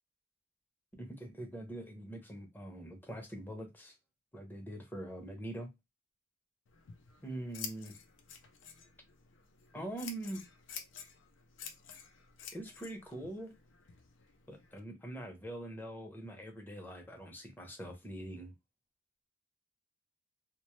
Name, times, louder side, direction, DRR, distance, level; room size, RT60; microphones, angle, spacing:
voice 1, 1.0-3.9 4.3-5.7 7.2-7.9 9.7-10.4 12.5-13.6 14.5-18.5, right 1 dB, 10° left, 0.6 m, -43 dB
Scissors, 6.7-14.8, left 7 dB, 75° left, 0.4 m, -50 dB
2.2 x 2.0 x 3.0 m
head